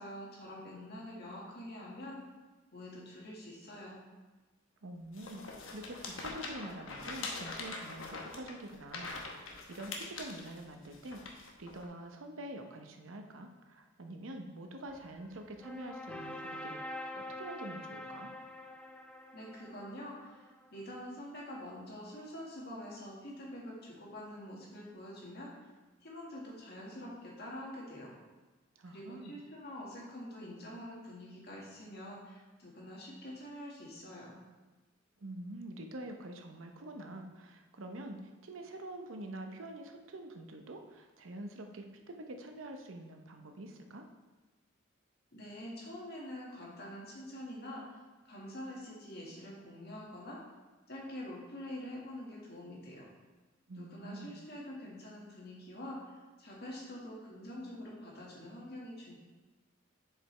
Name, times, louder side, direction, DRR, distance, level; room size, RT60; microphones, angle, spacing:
voice 1, 0.0-2.2 2.7-4.0 19.3-20.5 20.7-25.5 26.0-28.1 28.9-34.4 45.3-47.8 48.2-50.4 50.9-53.1 53.8-56.0 56.4-59.1, left 1 dB, 55° left, -3 dB, 1.7 m, -46 dB
voice 2, 4.8-18.3 28.8-29.4 35.2-38.2 38.4-44.0 53.7-54.4, right 1 dB, 80° right, 5 dB, 0.7 m, -46 dB
sound 1, 5.1-11.9, left 3 dB, 80° left, 0.9 m, -43 dB
sound 2, 14.9-20.8, left 1 dB, 5° left, 0.3 m, -46 dB
7.4 x 5.0 x 3.3 m, 1.2 s
head